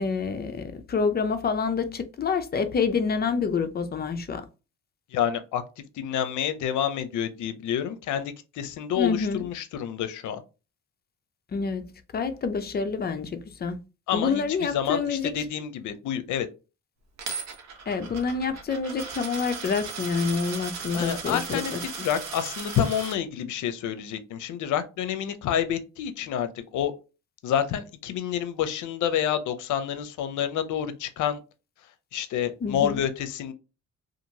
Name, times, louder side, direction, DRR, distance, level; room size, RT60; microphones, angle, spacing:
voice 1, 0.0-4.4 9.0-9.4 11.5-13.8 14.1-15.4 17.9-22.1 32.6-33.0, left 5 dB, 30° left, 0.5 m, -27 dB
voice 2, 5.1-5.6 6.0-10.4 14.1-16.5 20.9-26.9 27.4-31.4 32.1-33.5, left 9 dB, 75° left, 0.6 m, -28 dB
Coin (dropping), 17.2-23.1, right 5 dB, 60° right, 1.0 m, -37 dB
2.9 x 2.5 x 2.7 m
cardioid pair, 90°, 30 cm